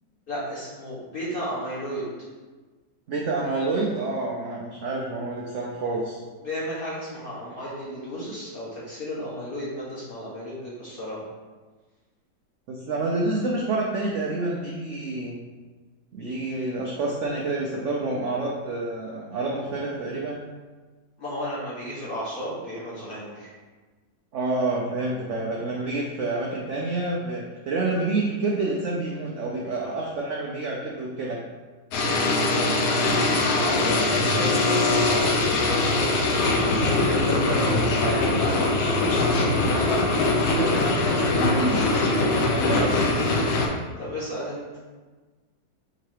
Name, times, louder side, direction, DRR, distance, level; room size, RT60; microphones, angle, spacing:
voice 1, 0.3-2.0 6.4-11.2 21.2-23.5 33.1-36.1 36.6-40.0 42.7-42.9 44.0-44.6, equal, 35° left, -8 dB, 1.3 m, -33 dB
voice 2, 3.1-6.2 12.7-15.3 16.1-20.4 24.3-31.4 40.3-41.1 41.3-43.1, right 2 dB, 75° right, -3 dB, 0.6 m, -28 dB
sound 1, 31.9-43.7, left 2 dB, 70° left, 1.1 m, -22 dB
3.8 x 2.9 x 4.6 m, 1.3 s
omnidirectional pair, 1.9 m